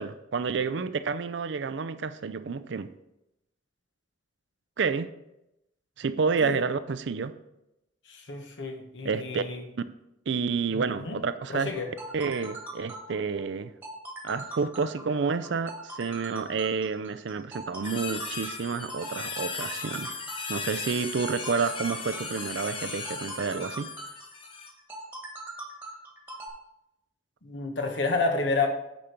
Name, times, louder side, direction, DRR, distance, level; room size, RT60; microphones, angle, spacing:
voice 1, 0.0-2.9 4.8-5.1 6.0-7.3 9.0-9.4 10.3-11.7 12.1-13.7 14.2-20.2 20.5-23.9, right 5 dB, 65° right, 13 dB, 0.4 m, -29 dB
voice 2, 8.1-9.6 11.0-11.1 11.6-11.9 27.4-28.7, left 3 dB, 65° left, 4 dB, 1.3 m, -29 dB
sound 1, 11.7-26.5, right 2 dB, 10° right, 1.4 m, -41 dB
sound 2, 17.8-24.7, left 4 dB, 25° left, 0.8 m, -37 dB
8.6 x 5.2 x 4.4 m, 0.88 s
head